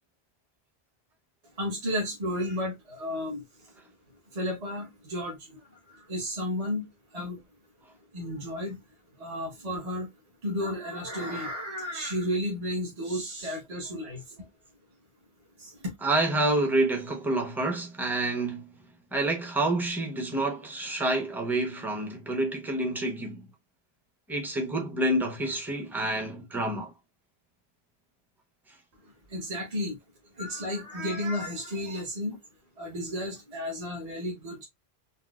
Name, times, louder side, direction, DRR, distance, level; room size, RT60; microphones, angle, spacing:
voice 1, 1.6-3.4 4.3-5.4 5.9-6.9 7.1-7.4 8.1-8.7 9.2-10.1 10.4-14.2 15.6-15.9 29.3-30.0 30.4-32.4 32.8-34.6, left 1 dB, 40° right, 0.9 m, -32 dB
voice 2, 16.0-18.7 19.1-23.4 24.3-26.9, right 2 dB, ahead, 0.7 m, -28 dB
4.1 x 2.1 x 2.3 m
omnidirectional pair, 1.0 m